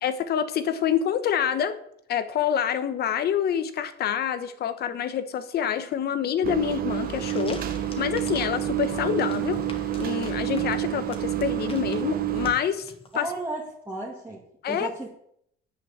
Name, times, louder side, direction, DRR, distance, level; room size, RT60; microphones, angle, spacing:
voice 1, 0.0-1.8 2.1-7.6 8.0-9.6 10.0-13.3 14.6-14.9, left 9 dB, 55° left, 12 dB, 1.2 m, -27 dB
sound 1, 6.4-12.5, right 12 dB, 50° right, 1.1 m, -28 dB
sound 2, 6.9-13.5, left 4 dB, 30° left, 1.8 m, -44 dB
voice 2, 13.1-15.1, right 2 dB, 10° right, -5 dB, 2.2 m, -34 dB
9.7 x 9.2 x 7.3 m, 0.71 s
cardioid pair, 160°, 20 cm